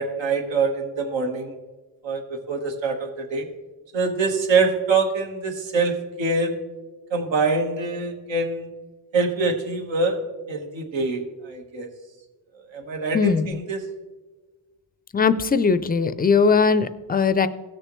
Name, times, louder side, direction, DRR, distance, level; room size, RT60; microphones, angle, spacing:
voice 1, 0.0-1.5 2.0-3.5 3.9-6.5 7.1-8.7 9.1-10.2 10.5-11.9 12.7-13.8, right 4 dB, 75° right, 3 dB, 1.5 m, -24 dB
voice 2, 13.1-13.6 15.1-17.5, left 5 dB, 20° left, 13 dB, 0.4 m, -20 dB
17.0 x 6.6 x 3.1 m, 1.3 s
cardioid pair, 90°, 45 cm